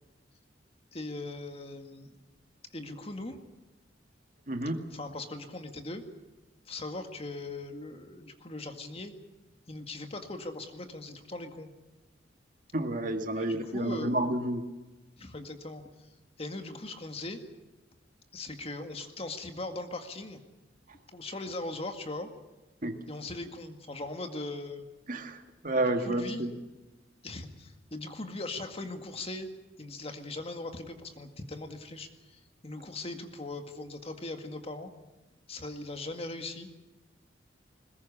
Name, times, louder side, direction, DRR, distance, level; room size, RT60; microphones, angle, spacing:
voice 1, 0.9-2.3 2.7-3.4 4.9-6.0 6.7-9.1 9.7-11.7 13.3-14.1 15.2-15.8 16.4-17.4 18.3-20.4 21.1-22.3 23.1-24.9 25.7-26.5 27.2-29.5 29.8-34.9 35.5-36.7, left 2 dB, 30° left, 6 dB, 2.0 m, -40 dB
voice 2, 4.5-4.8 12.7-14.7 22.8-23.0 25.1-26.5, right 1 dB, 45° right, 6 dB, 2.0 m, -30 dB
21.5 x 20.5 x 8.5 m, 1.1 s
head